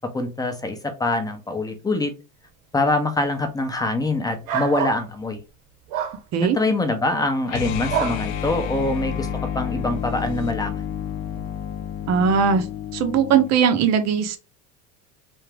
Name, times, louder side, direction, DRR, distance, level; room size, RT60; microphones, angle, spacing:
voice 1, 0.1-2.1 2.7-5.4 6.4-9.3 9.5-10.8, left 2 dB, 10° left, 0.7 m, -24 dB
sound 1, 4.5-5.0 5.9-6.2 7.9-8.2, right 8 dB, 70° right, 1.2 m, -25 dB
sound 2, 7.5-13.6, left 8 dB, 80° left, 0.7 m, -30 dB
voice 2, 12.1-12.7 12.9-14.4, right 7 dB, 45° right, 0.8 m, -19 dB
3.5 x 2.8 x 3.3 m
supercardioid pair, 120°, 38 cm